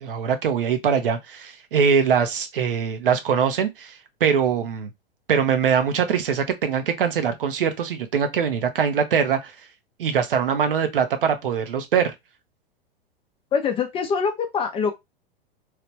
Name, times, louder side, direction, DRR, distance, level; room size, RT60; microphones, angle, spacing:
voice 1, 0.0-4.9 5.3-9.5 10.0-12.1, right 7 dB, 65° right, 0.8 m, -22 dB
voice 2, 13.5-14.9, left 6 dB, 20° left, 0.6 m, -24 dB
3.2 x 2.4 x 3.2 m
figure-of-eight pair, 100°, 29 cm